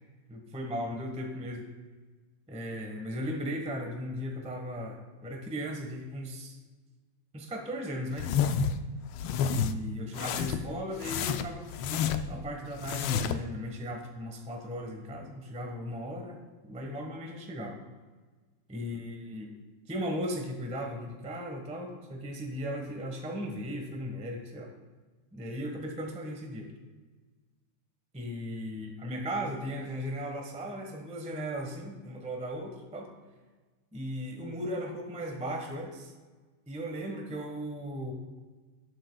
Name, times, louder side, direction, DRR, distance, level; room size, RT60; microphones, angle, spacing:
voice 1, 0.3-1.7 2.5-6.6 7.3-8.3 9.5-17.8 18.7-19.5 19.9-24.7 25.3-26.7 28.1-33.1 33.9-36.1 36.7-38.1, equal, 5° right, 1 dB, 0.9 m, -37 dB
sound 1, 8.2-8.8 9.2-9.7 10.1-10.7 11.0-12.4 12.8-13.4, left 7 dB, 75° left, 1.4 m, -29 dB
18.0 x 7.8 x 2.3 m, 1.3 s
omnidirectional pair, 2.4 m